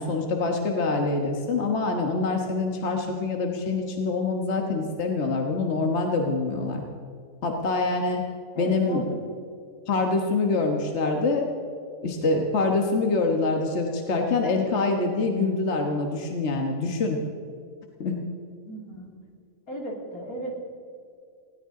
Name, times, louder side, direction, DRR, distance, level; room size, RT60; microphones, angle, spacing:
voice 1, 0.0-6.8 7.4-8.2 8.6-9.0 9.9-11.5 12.0-17.2 18.0-18.2, left 3 dB, 55° left, 2 dB, 1.6 m, -25 dB
voice 2, 8.6-9.0 18.6-19.1 19.7-20.5, right 1 dB, 85° left, 0 dB, 3.2 m, -36 dB
20.5 x 17.0 x 3.8 m, 2.3 s
omnidirectional pair, 1.5 m